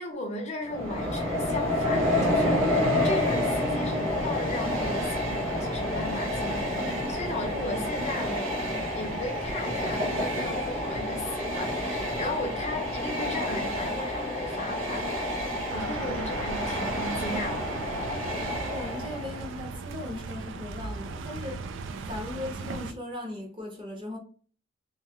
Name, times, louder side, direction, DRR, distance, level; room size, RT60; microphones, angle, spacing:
voice 1, 0.0-17.8, left 2 dB, 35° left, 0.5 m, -36 dB
Train, 0.6-19.6, left 1 dB, 90° right, 0.7 m, -29 dB
sound 1, 15.7-22.9, right 4 dB, 65° right, 0.3 m, -37 dB
voice 2, 15.8-16.2 18.6-21.7 22.0-24.2, left 2 dB, 25° right, 0.8 m, -38 dB
2.7 x 2.3 x 2.8 m
head